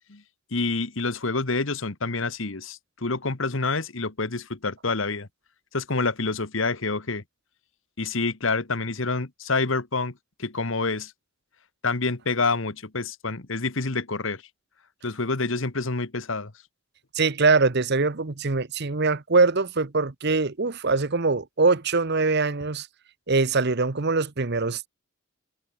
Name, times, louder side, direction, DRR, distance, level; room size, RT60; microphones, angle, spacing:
voice 1, 0.5-5.3 5.7-7.2 8.0-10.1 10.4-11.1 11.8-14.4 15.0-16.5, left 3 dB, 60° left, 1.5 m, -27 dB
voice 2, 17.1-22.9 23.3-24.9, right 3 dB, 50° right, 1.0 m, -23 dB
head